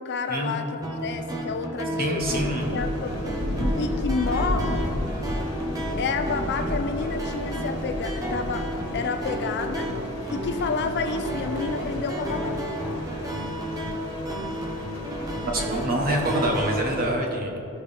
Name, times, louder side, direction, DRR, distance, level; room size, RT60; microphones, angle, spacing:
voice 1, 0.0-3.2 3.8-4.9 6.0-9.9 10.3-12.6, left 4 dB, 50° left, 7 dB, 0.5 m, -30 dB
sound 1, 0.8-16.7, equal, 15° right, 0.8 m, -32 dB
voice 2, 2.0-2.6 15.5-17.5, right 1 dB, 40° right, 0 dB, 1.1 m, -26 dB
sound 2, 2.2-17.2, left 1 dB, 75° left, 1.6 m, -33 dB
13.5 x 4.7 x 3.4 m, 2.9 s
head